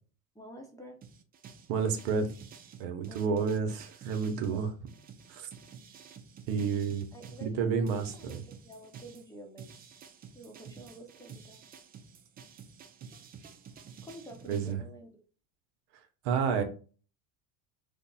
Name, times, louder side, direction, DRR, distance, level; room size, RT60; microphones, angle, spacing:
voice 1, 0.3-1.0 3.1-3.4 7.1-9.7 10.3-11.6 14.0-15.1, right 1 dB, 10° left, 2 dB, 0.8 m, -49 dB
Jungle Drums based off of amen breaks, 1.0-7.5 7.9-14.7, right 6 dB, 25° right, 0.3 m, -51 dB
voice 2, 1.7-2.3 2.8-4.7 5.3-5.5 6.5-7.1 7.4-8.4 14.5-14.8 16.2-16.6, right 6 dB, 65° right, 6 dB, 0.9 m, -30 dB
3.4 x 2.1 x 3.9 m, 0.37 s
supercardioid pair, 105°, 42 cm